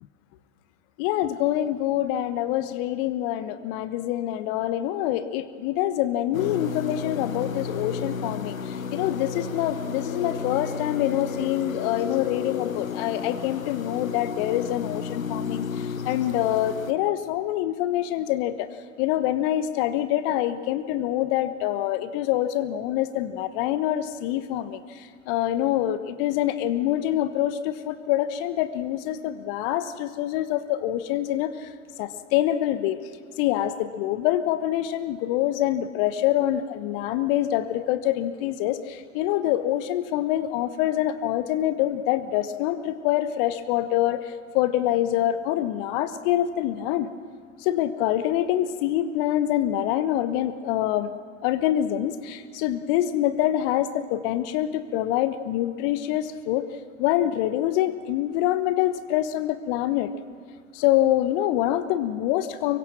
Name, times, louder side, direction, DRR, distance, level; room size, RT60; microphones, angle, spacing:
voice 1, 1.0-18.7 19.0-24.8 25.3-31.7 32.0-33.0 33.4-47.1 47.6-51.1 51.4-56.7 57.0-60.1 60.7-62.8, left 13 dB, 45° left, 12 dB, 1.2 m, -25 dB
sound 1, 6.3-16.9, left 6 dB, 85° left, 1.0 m, -33 dB
25.0 x 23.0 x 6.0 m, 2.1 s
figure-of-eight pair, 95°, 40 cm